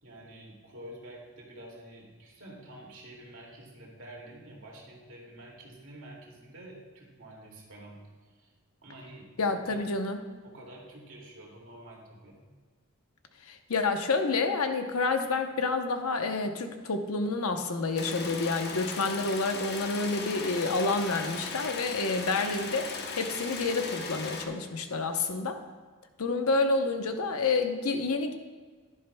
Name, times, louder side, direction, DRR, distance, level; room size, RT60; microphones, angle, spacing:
voice 1, 0.0-8.5 8.8-9.8 10.4-12.4, right 1 dB, 65° right, -2 dB, 2.3 m, -48 dB
voice 2, 9.4-10.2 13.5-25.6 26.2-28.3, left 3 dB, 85° left, 6 dB, 0.9 m, -29 dB
sound 1, 18.0-24.5, left 4 dB, 50° left, 0.9 m, -37 dB
11.5 x 11.0 x 2.3 m, 1.5 s
head